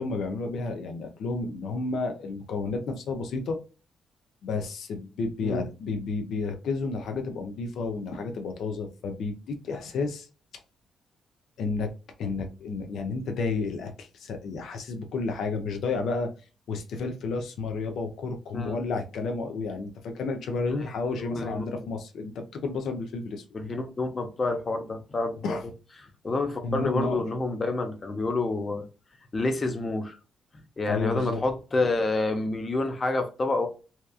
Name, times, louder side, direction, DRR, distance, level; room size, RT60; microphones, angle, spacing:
voice 1, 0.0-3.6 4.4-10.3 11.6-11.9 12.2-16.3 16.7-23.4 25.4-25.6 26.6-27.2 30.9-31.4, left 3 dB, 75° left, 0.5 m, -31 dB
voice 2, 18.5-19.0 21.2-21.8 23.5-25.6 26.2-28.8 29.3-30.2 30.8-33.7, left 2 dB, 30° left, 0.5 m, -28 dB
2.8 x 2.3 x 2.3 m
cardioid pair, 115°, 0 cm